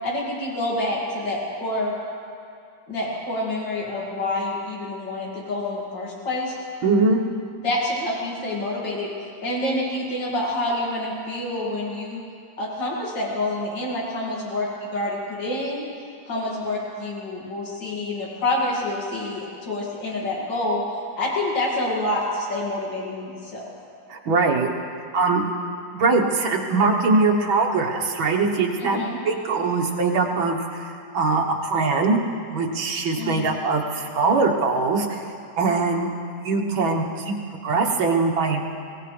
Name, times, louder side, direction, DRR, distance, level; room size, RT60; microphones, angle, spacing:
voice 1, 0.0-1.9 2.9-6.5 7.6-9.1 9.4-12.2 12.6-15.9 16.2-20.9 21.2-23.7 28.8-29.2 33.2-33.6, left 1 dB, 65° left, -4 dB, 3.2 m, -27 dB
voice 2, 6.8-7.2 24.1-24.7 25.1-25.4 25.9-32.2 32.5-36.1 36.4-37.3 37.6-38.6, right 3 dB, 85° right, 0 dB, 2.1 m, -22 dB
23.5 x 17.0 x 3.4 m, 2.4 s
omnidirectional pair, 2.1 m